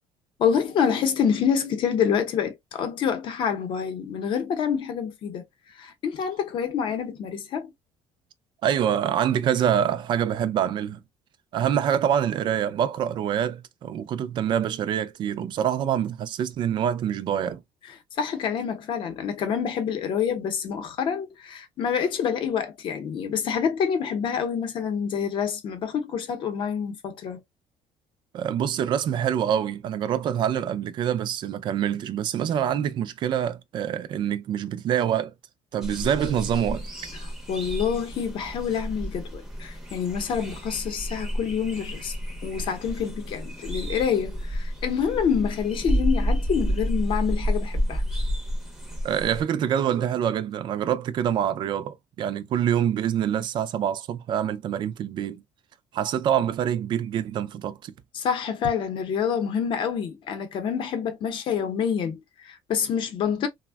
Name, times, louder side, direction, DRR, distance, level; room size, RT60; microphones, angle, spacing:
voice 1, 0.4-7.7 17.8-27.4 37.2-42.1 42.4-48.0 58.1-63.5, left 7 dB, 45° left, 0.7 m, -27 dB
voice 2, 8.6-11.0 11.5-17.6 28.3-35.3 35.7-36.9 49.0-55.4 55.9-57.9, right 9 dB, 45° right, 0.3 m, -25 dB
sound 1, 35.8-49.4, equal, 5° right, 0.6 m, -30 dB
3.3 x 2.1 x 2.2 m
cardioid pair, 160°, 11 cm